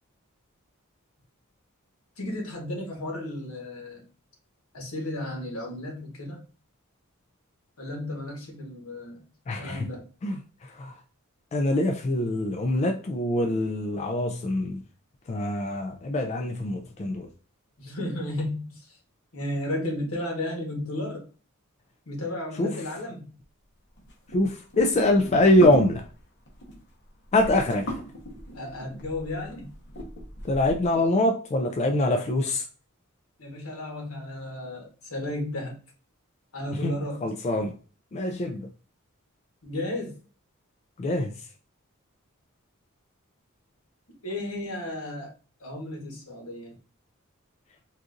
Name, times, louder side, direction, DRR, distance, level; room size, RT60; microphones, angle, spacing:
voice 1, 2.2-4.0 4.7-6.4 7.8-9.2 9.5-10.0 17.8-19.0 19.3-21.2 22.1-23.3 28.5-29.7 33.4-35.8 36.5-37.2 39.6-40.1 44.2-45.3 45.6-46.7, left 1 dB, 75° left, 1.2 m, -33 dB
voice 2, 9.5-9.9 10.2-10.9 11.5-14.8 15.3-17.3 22.6-22.8 24.3-26.1 27.3-28.0 30.4-32.6 36.8-37.0 37.2-37.7 38.1-38.7 41.0-41.3, left 1 dB, 30° left, 0.3 m, -24 dB
sound 1, 24.0-31.0, equal, 55° left, 1.0 m, -38 dB
4.0 x 2.5 x 2.5 m
head